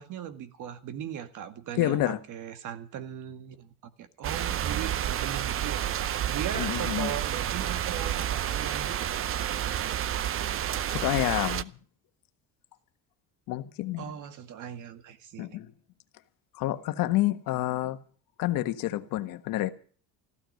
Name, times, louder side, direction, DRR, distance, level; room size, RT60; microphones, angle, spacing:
voice 1, 0.0-10.1 14.0-15.6, right 9 dB, 55° right, 1.9 m, -39 dB
voice 2, 1.8-2.2 6.5-7.1 10.9-11.7 13.5-14.0 15.4-15.7 16.5-18.0 18.4-19.7, left 15 dB, 65° left, 1.5 m, -28 dB
sound 1, 4.2-11.6, right 11 dB, 35° right, 0.7 m, -30 dB
15.0 x 12.5 x 6.6 m
cardioid pair, 130°, 36 cm